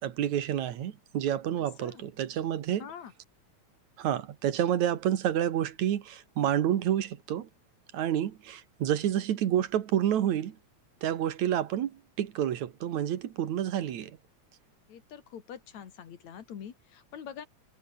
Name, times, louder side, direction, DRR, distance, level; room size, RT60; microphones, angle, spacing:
voice 1, 0.0-2.8 4.0-7.5 7.9-10.6 11.0-14.2, right 10 dB, 75° right, 2.8 m, -29 dB
voice 2, 1.6-2.1 2.8-3.1 14.9-17.5, left 8 dB, 70° left, 3.4 m, -45 dB
omnidirectional pair, 3.4 m